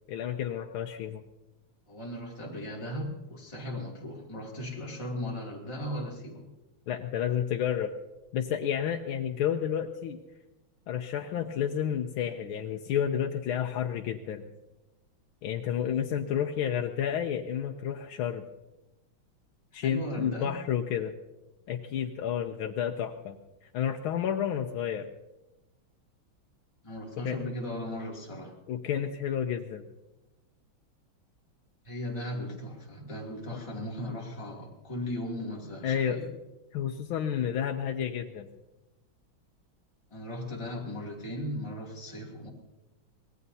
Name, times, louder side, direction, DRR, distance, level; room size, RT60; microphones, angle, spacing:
voice 1, 0.1-1.2 6.9-7.9 8.3-10.2 10.9-14.4 15.4-18.4 19.7-21.1 21.7-23.4 23.6-25.1 27.2-27.4 28.7-29.8 33.5-33.6 35.8-36.2 36.7-38.5, left 9 dB, 85° left, 3 dB, 1.6 m, -30 dB
voice 2, 1.9-6.4 19.8-20.6 26.8-28.6 31.8-36.3 40.1-42.5, left 1 dB, 15° left, -3 dB, 2.7 m, -37 dB
24.5 x 19.0 x 2.8 m, 1.0 s
omnidirectional pair, 2.3 m